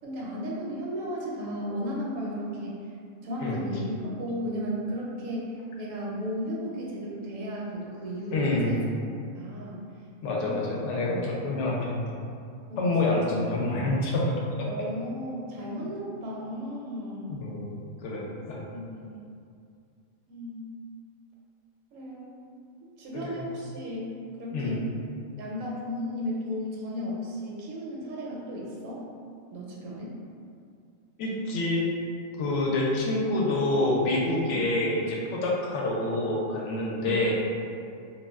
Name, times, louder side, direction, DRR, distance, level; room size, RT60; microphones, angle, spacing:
voice 1, 0.0-2.7 3.2-8.8 9.3-9.8 10.4-10.6 12.7-13.4 14.6-17.4 18.7-19.2 20.3-20.6 21.9-22.4 23.0-24.9 25.4-29.1 29.5-30.2 34.5-34.7 37.0-37.2, equal, 75° right, -4 dB, 0.9 m, -35 dB
voice 2, 8.3-8.8 10.2-12.1 12.8-14.3 17.3-18.6 23.1-23.4 24.5-24.8 31.2-31.9 32.4-37.4, left 2 dB, 70° left, -3 dB, 0.8 m, -27 dB
2.4 x 2.2 x 3.3 m, 2.4 s
omnidirectional pair, 1.4 m